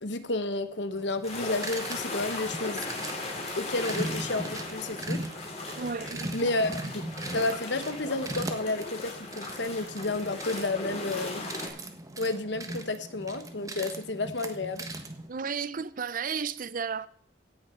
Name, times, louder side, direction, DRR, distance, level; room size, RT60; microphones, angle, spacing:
voice 1, 0.0-2.9 3.6-5.2 5.6-5.8 6.3-7.0 7.3-11.5 12.2-14.9, left 2 dB, 65° left, 1.2 m, -31 dB
sound 1, 0.9-15.3, right 1 dB, 20° right, 1.3 m, -39 dB
sound 2, 1.2-11.7, left 2 dB, 35° left, 3.2 m, -38 dB
voice 2, 5.7-6.5 15.3-17.1, right 5 dB, 50° right, 0.6 m, -33 dB
17.0 x 6.2 x 5.8 m
head